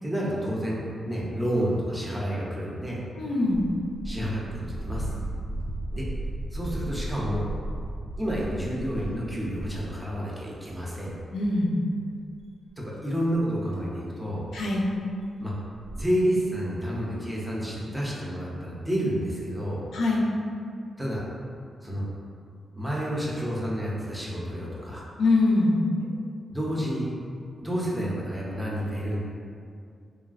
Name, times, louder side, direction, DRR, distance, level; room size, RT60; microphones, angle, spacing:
voice 1, 0.0-3.0 4.0-5.1 5.9-6.1 6.5-7.5 8.2-11.1 12.8-14.4 15.4-15.5 15.9-19.9 21.0-21.2 21.8-22.1 22.8-25.0 26.5-27.1 27.6-29.2, equal, 10° right, -5 dB, 0.5 m, -29 dB
voice 2, 3.2-3.6 11.3-11.7 14.5-14.9 19.9-20.2 25.2-25.8, left 2 dB, 90° left, -3 dB, 0.5 m, -23 dB
sound 1, 3.5-10.0 10.7-11.2 11.4-11.5 12.3-12.4 13.3-13.4 13.7-13.8 14.5-14.7 14.9-15.0 15.2-15.3 15.6-16.1, right 1 dB, 70° right, 0.3 m, -35 dB
3.0 x 2.3 x 2.4 m, 2.3 s
wide cardioid pair, 150°, 0 cm